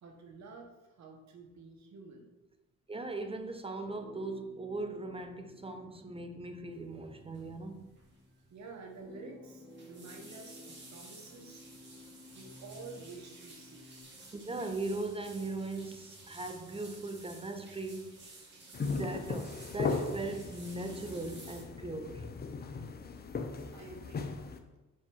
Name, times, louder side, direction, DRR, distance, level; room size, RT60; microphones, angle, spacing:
voice 1, 0.0-2.3 8.5-11.6 12.3-14.0 23.7-24.3, right 3 dB, 65° right, 1.6 m, -50 dB
voice 2, 2.9-7.9 14.3-18.3 18.8-22.3, right 2 dB, 20° right, 0.7 m, -39 dB
sound 1, 3.8-14.0, left 1 dB, 60° left, 2.1 m, -55 dB
sound 2, 7.3-7.6 7.8-8.2 8.4-8.5 9.5-21.6, right 2 dB, 35° right, 2.1 m, -54 dB
sound 3, 18.7-24.6, left 4 dB, 30° left, 0.7 m, -37 dB
5.4 x 4.4 x 5.5 m
cardioid pair, 90°, 30 cm